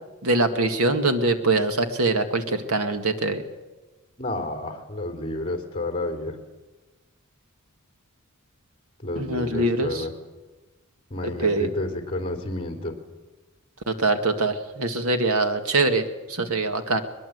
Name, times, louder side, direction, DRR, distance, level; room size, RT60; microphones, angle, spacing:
voice 1, 0.2-3.4 9.2-10.1 11.2-11.7 13.9-17.0, right 2 dB, 70° right, 8 dB, 2.0 m, -23 dB
voice 2, 4.2-6.4 9.0-10.1 11.1-12.9, left 1 dB, 25° left, 5 dB, 3.3 m, -30 dB
22.0 x 21.5 x 8.1 m, 1.2 s
head